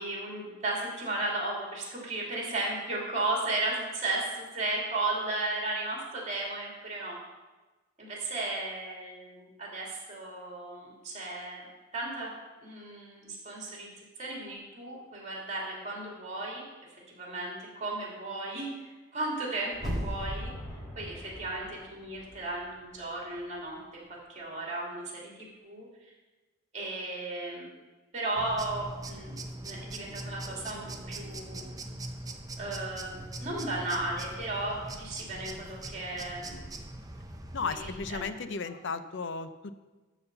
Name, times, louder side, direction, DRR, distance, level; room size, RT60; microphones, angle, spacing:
voice 1, 0.0-7.2 8.0-11.6 11.9-12.3 12.6-13.9 14.2-16.6 17.2-20.5 21.0-25.9 26.7-27.7 28.1-29.4 29.6-31.6 32.6-36.6 37.7-38.3, right 2 dB, 35° right, -2 dB, 2.8 m, -35 dB
sound 1, 19.7-22.7 23.0-23.1, equal, ahead, 2.0 m, -38 dB
sound 2, 28.3-38.2, right 2 dB, 20° right, 0.7 m, -42 dB
voice 2, 37.5-39.8, left 4 dB, 60° left, 11 dB, 0.6 m, -35 dB
12.5 x 4.2 x 6.8 m, 1.2 s
head